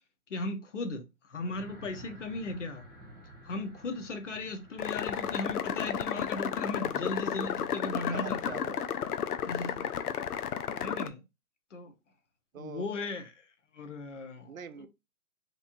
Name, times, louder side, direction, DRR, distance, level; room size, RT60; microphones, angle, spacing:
voice 1, 0.3-2.8 3.4-8.6 9.5-9.9 10.8-11.2 11.7-11.9 12.6-13.4 13.7-14.5 14.8-14.9, left 2 dB, 55° left, 0.9 m, -37 dB
sound 1, 1.5-9.0, right 1 dB, 10° right, 0.8 m, -53 dB
sound 2, 4.8-11.1, left 8 dB, 80° left, 0.6 m, -33 dB
voice 2, 8.1-8.9 10.6-11.0 12.5-12.9 14.5-14.9, right 8 dB, 65° right, 0.6 m, -45 dB
4.2 x 2.9 x 2.5 m
hypercardioid pair, 180°, 44 cm